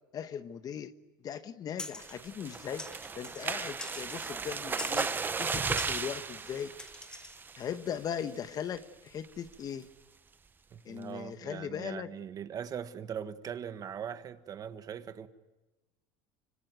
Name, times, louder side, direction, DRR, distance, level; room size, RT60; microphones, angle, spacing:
voice 1, 0.1-0.9 1.2-5.1 5.4-6.7 7.6-9.9 10.8-12.1, left 8 dB, 35° left, 1.2 m, -39 dB
sound 1, 1.8-2.2 2.8-3.5 3.8-4.3 4.8-5.2 5.8-6.1 6.8-7.4, left 2 dB, 5° left, 1.2 m, -43 dB
sound 2, 2.0-7.8 8.2-8.5 8.8-8.9 9.2-9.5, right 5 dB, 20° right, 0.9 m, -35 dB
voice 2, 10.7-15.3, right 8 dB, 35° right, 1.4 m, -40 dB
25.5 x 25.5 x 9.2 m
supercardioid pair, 125°, 11 cm